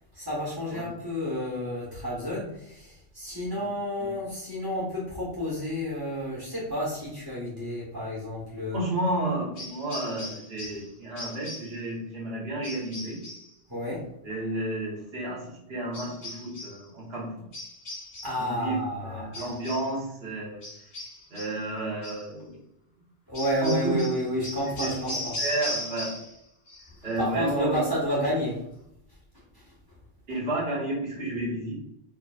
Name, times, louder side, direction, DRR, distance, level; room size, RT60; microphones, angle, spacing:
voice 1, 0.1-8.8 13.7-14.1 18.2-19.5 23.3-25.3 27.2-28.6, equal, 20° right, -8 dB, 1.3 m, -30 dB
voice 2, 8.7-13.2 14.2-17.4 18.4-20.6 21.3-22.6 23.6-24.1 24.8-24.9 25.4-26.1 27.0-27.9 30.3-31.7, right 2 dB, 60° right, -5 dB, 1.6 m, -31 dB
sound 1, 9.6-10.9 11.2-11.8 12.6-13.5 15.9-16.8 17.5-18.5 19.3-20.0 20.6-21.6 22.0-22.3 23.3-26.4 26.7-27.2, left 1 dB, 90° left, 1.6 m, -38 dB
4.6 x 3.1 x 2.5 m, 0.79 s
omnidirectional pair, 1.1 m